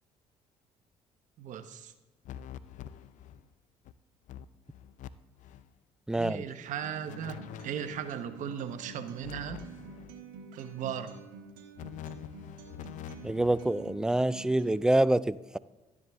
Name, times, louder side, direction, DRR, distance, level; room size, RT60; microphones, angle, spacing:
voice 1, 1.4-1.9 6.1-9.7 10.5-11.2, right 8 dB, 65° right, 10 dB, 1.0 m, -37 dB
sound 1, 2.2-3.5 3.8-3.9 4.3-5.1 5.4-5.7 7.1-8.2 9.2-10.2 11.7-13.7, left 10 dB, 65° left, 0.5 m, -45 dB
voice 2, 6.1-6.4 13.2-15.6, right 1 dB, 5° right, 18 dB, 0.3 m, -26 dB
Acoustic guitar, 6.8-14.8, right 4 dB, 85° right, 1.4 m, -49 dB
12.0 x 10.5 x 3.5 m, 1.1 s
supercardioid pair, 70°, 14 cm